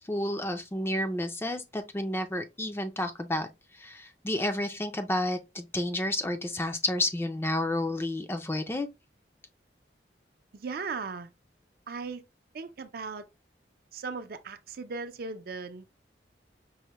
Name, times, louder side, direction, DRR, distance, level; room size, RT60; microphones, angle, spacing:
voice 1, 0.0-3.5 3.7-8.9, left 1 dB, 15° left, 0.4 m, -31 dB
voice 2, 10.5-11.3 11.9-12.2 12.5-13.2 13.9-15.8, right 4 dB, 55° right, 0.4 m, -37 dB
5.4 x 2.1 x 2.9 m
head